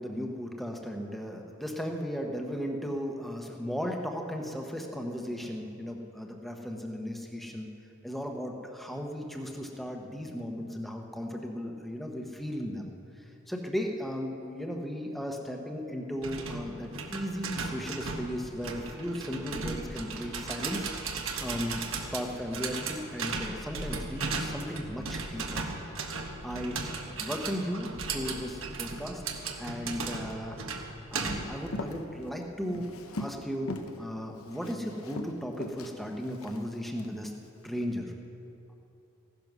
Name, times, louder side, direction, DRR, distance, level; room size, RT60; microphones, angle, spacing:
voice 1, 0.0-7.7 8.0-12.9 13.2-20.9 21.4-25.7 26.4-26.8 27.2-29.2 29.6-30.6 31.1-32.9 33.2-37.3 37.6-38.1, equal, ahead, 1 dB, 1.0 m, -36 dB
sound 1, 16.2-31.6, right 4 dB, 65° right, 1.3 m, -36 dB
Walk footsteps, 31.5-33.4 33.7-34.0 34.3-37.1 37.6-37.9, left 2 dB, 80° left, 1.0 m, -40 dB
16.0 x 10.5 x 6.1 m, 2.8 s
head